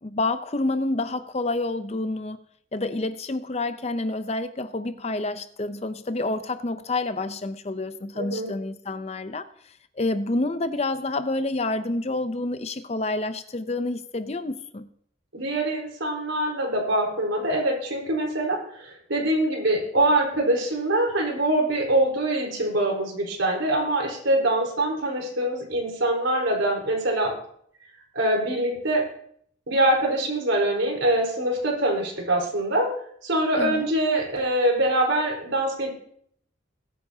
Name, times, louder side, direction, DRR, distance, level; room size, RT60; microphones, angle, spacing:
voice 1, 0.0-2.4 2.7-9.5 10.0-14.9 33.6-33.9, left 2 dB, 35° left, 0.6 m, -28 dB
voice 2, 8.1-8.5 15.3-27.3 28.1-29.1 29.7-32.9 33.2-35.9, right 1 dB, 90° right, 4.3 m, -24 dB
21.5 x 8.9 x 2.8 m
head